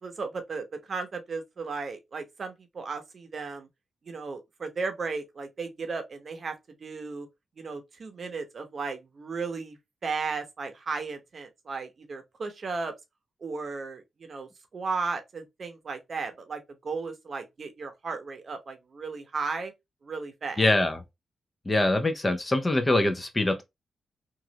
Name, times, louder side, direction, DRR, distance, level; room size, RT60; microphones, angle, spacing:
voice 1, 0.0-3.7 4.0-6.5 6.8-7.3 7.6-9.8 10.0-12.9 13.4-19.7 20.0-20.8, right 4 dB, 50° right, 0.8 m, -35 dB
voice 2, 20.6-21.0 21.7-23.6, left 2 dB, 20° left, 0.6 m, -24 dB
3.0 x 2.4 x 2.8 m
cardioid pair, 100°, 0 cm